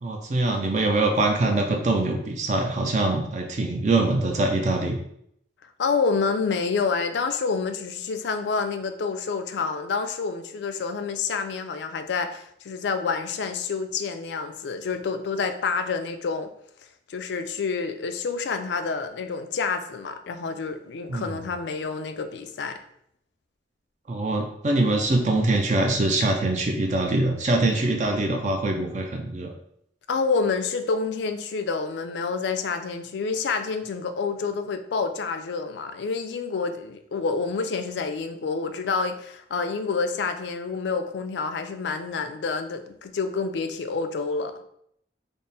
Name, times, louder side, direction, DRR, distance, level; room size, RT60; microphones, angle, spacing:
voice 1, 0.0-5.0 21.1-21.4 24.1-29.5, right 2 dB, 40° right, 2 dB, 0.4 m, -23 dB
voice 2, 5.8-16.5 17.1-22.8 30.1-44.6, left 4 dB, 75° left, 8 dB, 0.4 m, -28 dB
3.5 x 2.0 x 4.1 m, 0.71 s
head